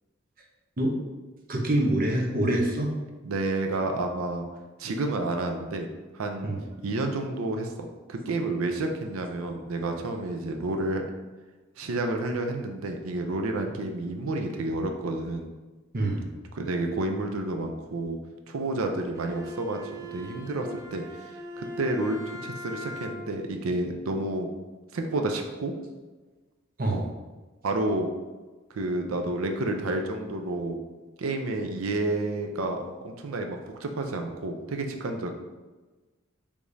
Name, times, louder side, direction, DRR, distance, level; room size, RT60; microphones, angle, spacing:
voice 1, 1.5-2.9 6.4-6.6 15.9-16.3 26.8-27.0, right 1 dB, 45° right, 0 dB, 0.7 m, -25 dB
voice 2, 3.2-4.5 4.8-5.9 6.1-6.5 6.8-11.0 11.8-15.5 16.5-18.2 18.5-19.8 20.1-21.0 21.6-24.5 24.9-25.7 26.9-27.0 27.6-28.1 28.7-30.8 31.2-35.3, right 2 dB, 90° right, 4 dB, 0.5 m, -30 dB
Bowed string instrument, 19.1-23.5, left 1 dB, 15° right, 0.4 m, -40 dB
4.9 x 3.4 x 2.7 m, 1.2 s
head